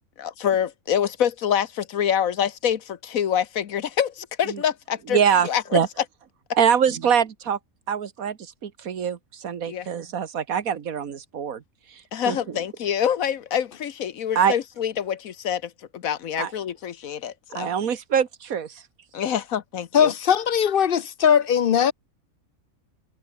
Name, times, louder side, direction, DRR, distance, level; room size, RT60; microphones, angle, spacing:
voice 1, 0.2-5.8 9.7-9.9 12.1-17.7 19.1-20.1, left 9 dB, 75° left, 1.4 m, -26 dB
voice 2, 5.1-5.9 6.6-7.6 7.9-11.6 12.3-12.4 14.4-14.5 16.4-16.5 17.5-18.7, right 7 dB, 80° right, 1.8 m, -24 dB
voice 3, 19.9-21.9, left 8 dB, 55° left, 0.7 m, -19 dB
omnidirectional pair, 1.5 m